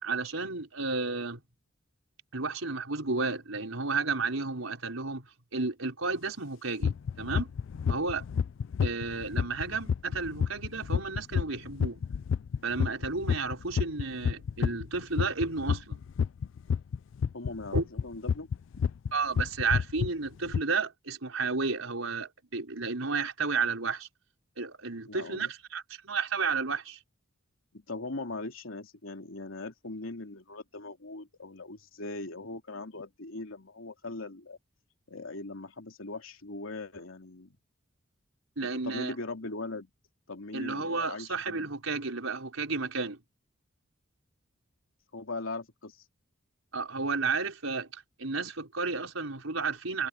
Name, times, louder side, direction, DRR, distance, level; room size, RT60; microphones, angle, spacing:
voice 1, 0.0-1.4 2.3-5.3 5.5-7.5 7.9-8.2 8.8-12.0 12.6-16.0 17.7-17.8 19.1-24.1 24.6-27.0 38.6-39.1 40.5-43.2 46.7-50.1, right 4 dB, 85° right, 4.7 m, -32 dB
sound 1, 6.8-19.1 19.4-20.1 20.5-20.6, left 6 dB, 65° left, 0.4 m, -29 dB
voice 2, 17.3-18.5 25.1-25.5 27.7-34.6 35.1-37.6 38.6-39.9 40.3-41.7 45.1-46.0, left 2 dB, 85° left, 3.0 m, -40 dB
head